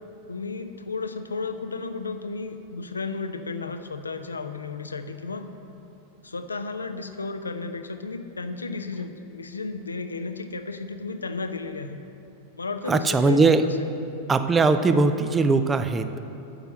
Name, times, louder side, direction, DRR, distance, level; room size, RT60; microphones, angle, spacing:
voice 1, 0.3-5.5 6.2-12.0 12.6-13.4 13.8-13.9, left 4 dB, 75° left, 8 dB, 0.6 m, -33 dB
voice 2, 12.9-13.7 14.3-16.1, right 3 dB, 15° right, 10 dB, 0.5 m, -20 dB
8.8 x 6.8 x 7.7 m, 2.8 s
figure-of-eight pair, 90°, 0 cm